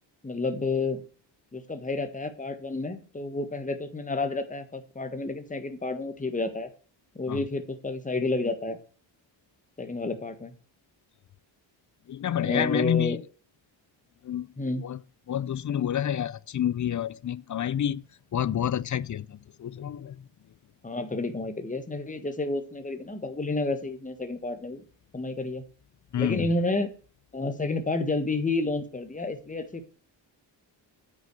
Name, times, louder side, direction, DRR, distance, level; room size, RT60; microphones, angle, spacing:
voice 1, 0.2-1.0 1.5-6.7 7.2-8.8 9.8-10.5 12.4-13.2 14.6-14.8 20.8-24.8 25.1-25.6 26.2-26.9 27.3-29.9, left 2 dB, 15° left, 1.6 m, -30 dB
voice 2, 12.1-13.2 14.2-14.5 14.8-15.0 15.3-18.0 18.3-20.2 26.1-26.5, left 10 dB, 40° left, 0.5 m, -28 dB
9.1 x 6.4 x 6.8 m
cardioid pair, 110°, 46 cm